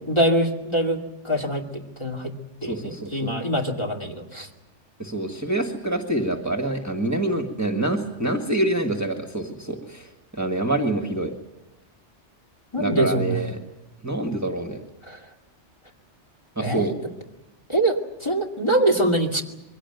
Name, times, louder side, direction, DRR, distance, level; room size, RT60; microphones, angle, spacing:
voice 1, 0.1-1.7 2.0-2.3 2.6-4.5 12.7-13.4 15.0-15.2 16.6-16.8 17.7-18.0 18.2-19.4, right 1 dB, 25° left, 1 dB, 2.5 m, -23 dB
voice 2, 2.6-3.3 5.0-10.1 10.4-11.3 12.8-13.6 14.0-14.8 16.6-16.9, right 1 dB, 15° right, 4 dB, 1.7 m, -26 dB
23.0 x 16.5 x 9.3 m, 1.0 s
omnidirectional pair, 1.2 m